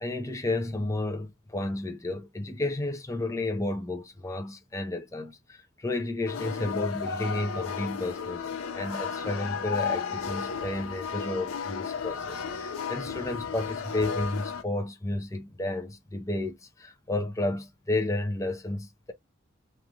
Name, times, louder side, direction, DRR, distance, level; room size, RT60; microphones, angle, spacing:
voice 1, 0.0-19.1, left 2 dB, 15° left, 0.5 m, -32 dB
sound 1, 6.3-14.6, left 6 dB, 85° left, 0.6 m, -34 dB
3.1 x 2.4 x 2.3 m
head